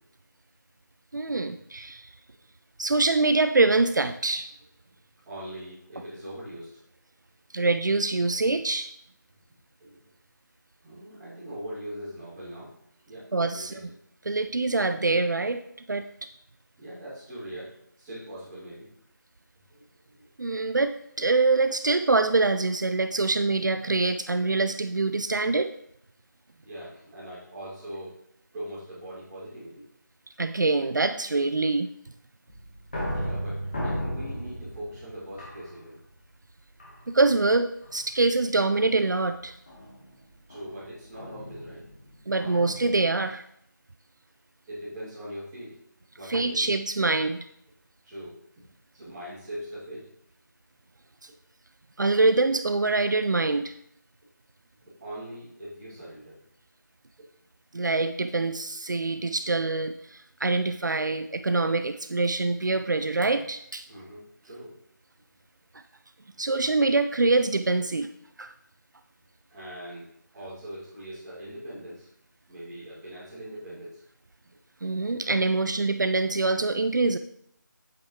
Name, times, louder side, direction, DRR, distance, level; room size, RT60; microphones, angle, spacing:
voice 1, 1.1-2.1 2.8-4.5 7.5-8.9 13.3-13.8 14.2-15.6 15.9-16.0 20.4-25.7 30.4-31.9 37.1-39.5 42.3-43.4 46.3-47.5 52.0-53.7 57.7-63.8 66.4-68.1 68.4-68.5 74.8-77.2, right 3 dB, 70° right, 9 dB, 0.5 m, -24 dB
voice 2, 5.2-6.8 9.8-10.1 10.8-12.7 13.1-13.8 16.8-18.9 19.7-20.3 26.6-28.2 28.5-29.9 33.0-36.0 40.5-41.9 44.7-45.8 46.1-46.7 48.0-48.6 48.9-50.1 54.9-56.4 63.9-64.8 69.5-72.1 72.5-74.0, right 1 dB, 10° right, -14 dB, 2.8 m, -41 dB
sound 1, 32.5-36.2 36.8-37.4 37.8-38.2 39.7-43.0, equal, 30° left, 1.7 m, -36 dB
8.3 x 7.4 x 3.3 m, 0.72 s
figure-of-eight pair, 175°, 10 cm